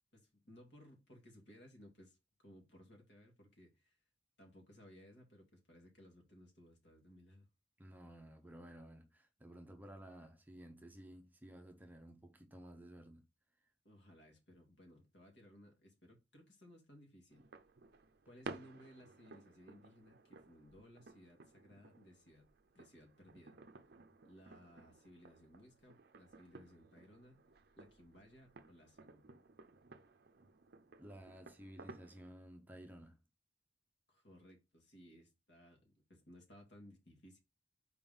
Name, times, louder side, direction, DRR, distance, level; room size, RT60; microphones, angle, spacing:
voice 1, 0.1-4.0 4.4-7.5 13.8-17.5 18.3-22.4 22.8-23.6 24.2-27.4 27.8-29.2 34.1-37.4, equal, 60° left, 2.1 m, -61 dB
voice 2, 7.8-13.3 31.0-33.2, right 1 dB, 10° right, 0.7 m, -54 dB
sound 1, 17.3-32.3, right 3 dB, 55° right, 0.5 m, -56 dB
4.6 x 3.7 x 5.4 m
head